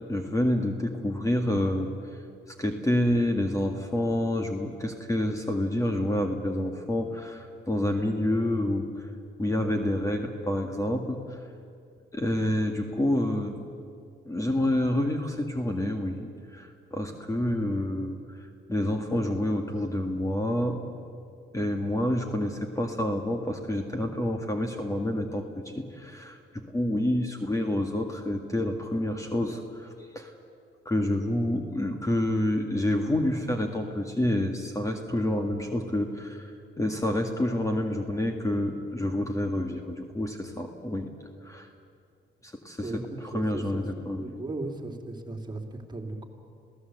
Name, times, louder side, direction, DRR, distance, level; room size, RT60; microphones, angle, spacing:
voice 1, 0.1-1.9 2.6-9.1 9.4-11.4 12.1-13.6 14.3-20.8 21.5-29.9 30.2-30.3 30.9-41.1 41.4-41.7 42.4-44.3, left 1 dB, 15° left, 4 dB, 1.9 m, -28 dB
voice 2, 43.3-43.8 44.2-46.3, right 2 dB, 20° right, 2 dB, 3.1 m, -36 dB
27.0 x 17.0 x 8.0 m, 2.4 s
cardioid pair, 90°, 20 cm